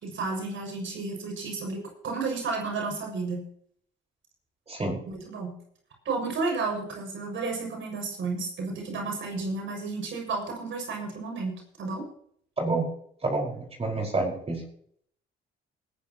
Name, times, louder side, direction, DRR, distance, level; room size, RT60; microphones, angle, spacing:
voice 1, 0.0-3.4 5.1-5.5 6.0-11.5 11.8-12.0, right 3 dB, 65° right, 1 dB, 6.4 m, -32 dB
voice 2, 4.7-5.0 12.6-12.9 13.2-14.6, right 2 dB, 30° right, 0 dB, 5.0 m, -28 dB
20.0 x 13.0 x 3.0 m, 0.63 s
cardioid pair, 85°, 21 cm